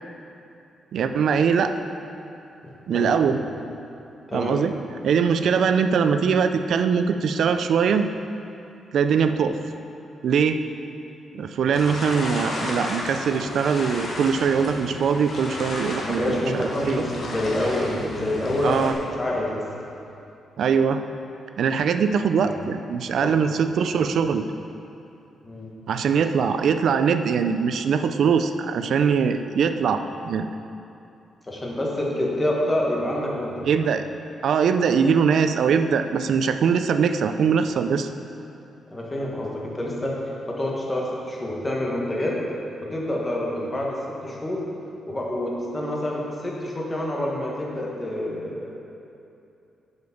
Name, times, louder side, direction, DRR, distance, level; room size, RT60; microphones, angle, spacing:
voice 1, 0.9-1.8 2.9-3.4 4.3-4.7 5.0-8.1 8.9-9.6 10.2-10.6 11.3-16.4 16.9-17.0 18.6-18.9 20.6-21.0 21.6-24.4 25.9-30.5 33.7-34.0 34.4-38.1, right 6 dB, 65° right, 9 dB, 0.4 m, -22 dB
sound 1, 11.7-18.9, left 1 dB, 45° left, 1.4 m, -33 dB
voice 2, 16.1-18.9 19.2-19.6 23.2-23.4 25.4-25.7 31.5-33.7 38.9-40.2 40.5-42.4 42.9-44.6 45.1-48.8, left 1 dB, 15° left, -3 dB, 1.4 m, -27 dB
8.0 x 5.2 x 7.0 m, 2.7 s
wide cardioid pair, 155°, 0 cm